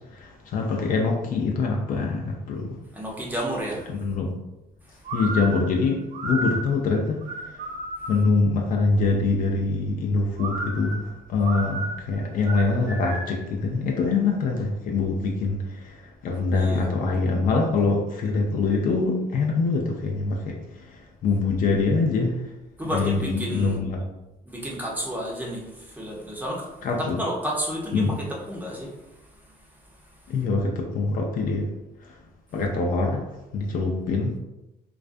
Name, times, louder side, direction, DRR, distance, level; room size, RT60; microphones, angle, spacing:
voice 1, 0.0-2.8 3.9-4.3 5.1-7.6 8.1-22.4 22.9-24.0 26.8-27.2 27.9-28.2 30.3-31.7 32.0-32.2 32.5-33.3 33.5-34.4, left 3 dB, 55° left, 1 dB, 0.5 m, -24 dB
voice 2, 2.9-3.9 16.5-16.9 22.8-23.8 24.5-26.7 27.0-29.1, equal, 10° right, -3 dB, 0.6 m, -31 dB
sound 1, 5.0-8.4 10.4-13.5, right 2 dB, 70° right, 0.9 m, -33 dB
2.4 x 2.2 x 2.5 m, 0.96 s
cardioid pair, 110°, 17 cm